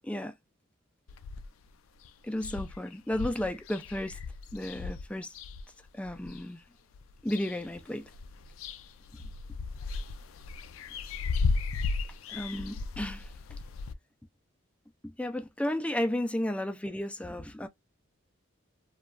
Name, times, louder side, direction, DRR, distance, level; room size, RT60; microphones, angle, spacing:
voice 1, 0.0-0.3 2.2-4.2 4.5-5.3 5.9-6.6 7.2-8.1 12.3-13.3 15.0-17.7, left 1 dB, 5° left, 0.3 m, -33 dB
sound 1, 1.1-1.7 2.0-2.1 2.4-6.4 6.9-7.8 8.1-13.9, left 4 dB, 90° left, 0.4 m, -35 dB
3.0 x 2.3 x 2.4 m
head